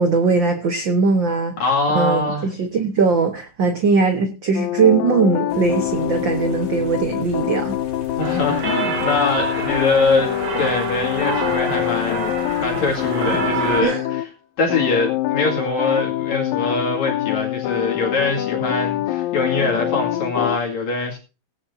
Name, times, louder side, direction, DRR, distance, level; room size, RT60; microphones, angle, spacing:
voice 1, 0.0-1.5 1.9-7.8 13.8-14.0, right 4 dB, 60° right, 6 dB, 1.2 m, -20 dB
voice 2, 1.6-2.5 8.2-12.3 12.6-14.2 14.6-21.2, left 3 dB, 60° left, 0 dB, 3.4 m, -23 dB
sound 1, 4.5-14.3 14.7-20.6, left 14 dB, 90° left, 2.5 m, -25 dB
sound 2, 5.5-13.8, equal, 20° left, 2.3 m, -40 dB
sound 3, 8.2-13.8, right 4 dB, 75° right, 5.2 m, -27 dB
18.5 x 10.0 x 2.7 m, 0.32 s
omnidirectional pair, 3.9 m